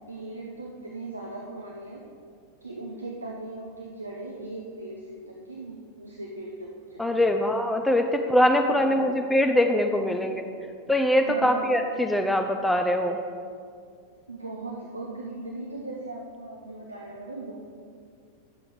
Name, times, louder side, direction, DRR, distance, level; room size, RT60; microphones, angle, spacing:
voice 1, 0.1-2.0 2.6-7.3 8.7-9.2 11.2-11.8 14.3-17.6, right 2 dB, 80° right, -1 dB, 0.9 m, -38 dB
voice 2, 7.0-10.4 10.9-13.2, left 1 dB, 5° left, 4 dB, 0.5 m, -23 dB
11.0 x 6.9 x 4.9 m, 2.3 s
figure-of-eight pair, 90°, 0 cm